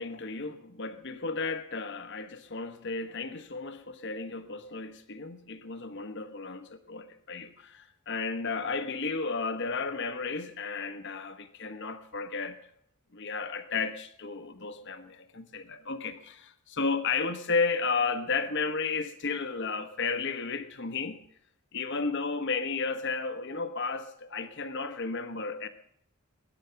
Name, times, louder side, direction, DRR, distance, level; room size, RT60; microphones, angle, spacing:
voice 1, 0.0-12.6 13.1-21.2 21.7-25.7, left 4 dB, 55° left, 1.1 m, -33 dB
20.5 x 9.7 x 5.8 m
head